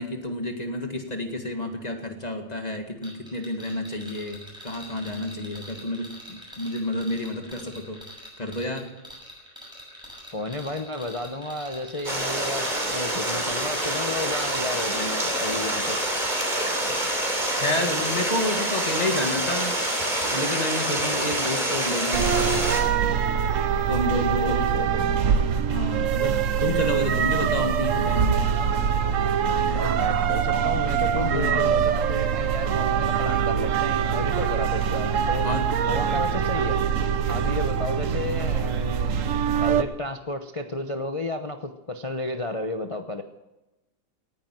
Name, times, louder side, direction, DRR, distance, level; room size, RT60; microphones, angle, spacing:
voice 1, 0.0-8.0 8.4-8.9 17.4-19.7 20.2-22.3 23.9-24.6 25.7-28.5 31.2-31.7 35.4-35.6, left 1 dB, 20° left, 4 dB, 1.8 m, -30 dB
sound 1, 3.0-17.7 18.0-18.2, equal, ahead, 6.4 m, -44 dB
voice 2, 10.3-16.0 24.1-25.2 29.7-35.5 35.8-36.8 37.3-39.3 39.6-43.2, left 2 dB, 55° left, 6 dB, 0.3 m, -32 dB
Stream, 12.0-22.8, right 1 dB, 20° right, 3.5 m, -26 dB
sound 2, 22.1-39.8, right 8 dB, 55° right, 0.9 m, -24 dB
18.5 x 10.0 x 7.6 m, 1.0 s
omnidirectional pair, 2.1 m